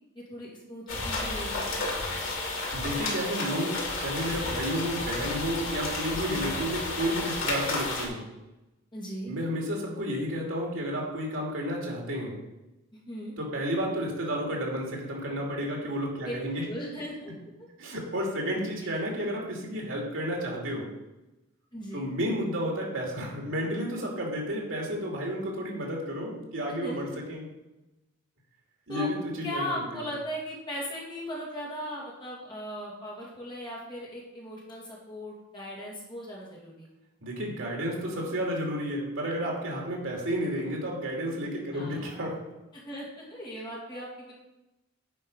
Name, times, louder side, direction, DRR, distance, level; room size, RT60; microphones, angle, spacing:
voice 1, 0.2-1.7 6.1-6.5 8.9-9.3 12.9-13.4 16.2-16.3 16.7-17.3 21.7-22.1 26.8-27.2 28.9-29.1 29.4-36.9 41.7-42.1 42.7-44.3, equal, 20° left, -4 dB, 2.5 m, -38 dB
sound 1, 0.9-8.1, left 2 dB, 80° left, 2.7 m, -32 dB
voice 2, 2.7-8.2 9.3-12.4 13.4-16.7 17.8-20.9 21.9-27.5 28.9-30.1 37.2-42.4, equal, 70° right, -1 dB, 2.6 m, -31 dB
10.0 x 5.4 x 5.3 m, 0.99 s
head